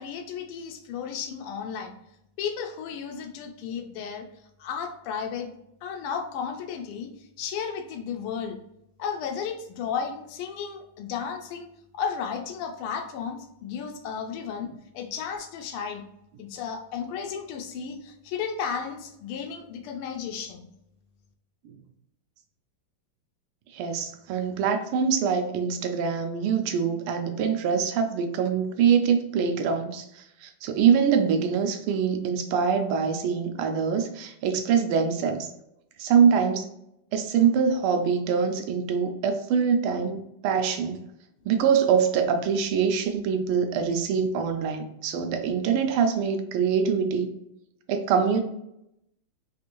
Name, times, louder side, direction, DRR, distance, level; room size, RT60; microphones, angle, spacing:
voice 1, 0.0-1.9 2.4-4.3 4.6-5.5 5.8-8.6 9.0-11.7 11.9-16.0 16.4-20.7, left 7 dB, 90° left, 4 dB, 1.5 m, -33 dB
voice 2, 23.7-35.5 36.0-36.7 37.1-41.0 41.4-47.3 47.9-48.4, right 6 dB, 85° right, 6 dB, 1.5 m, -24 dB
4.0 x 2.6 x 2.9 m, 0.81 s
omnidirectional pair, 2.3 m